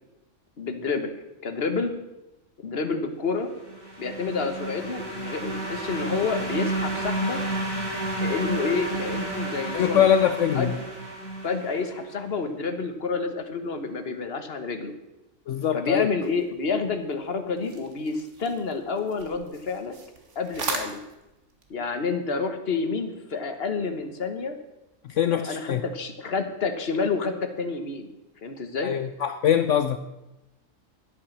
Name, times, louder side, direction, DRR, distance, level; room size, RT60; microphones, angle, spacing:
voice 1, 0.6-1.1 1.4-1.9 2.6-3.5 4.0-7.4 8.2-10.1 10.5-10.7 11.4-14.9 15.7-20.0 20.3-21.0 21.7-24.6 25.3-28.1 28.4-28.9, left 4 dB, 45° left, 1.4 m, -29 dB
sound 1, 3.5-12.1, right 2 dB, 15° left, 2.9 m, -31 dB
voice 2, 9.7-10.8 15.5-16.1 25.1-25.8 28.8-30.0, left 9 dB, 65° left, 0.9 m, -22 dB
sound 2, 16.2-21.7, right 3 dB, 55° right, 1.8 m, -39 dB
12.0 x 8.5 x 7.2 m
omnidirectional pair, 1.5 m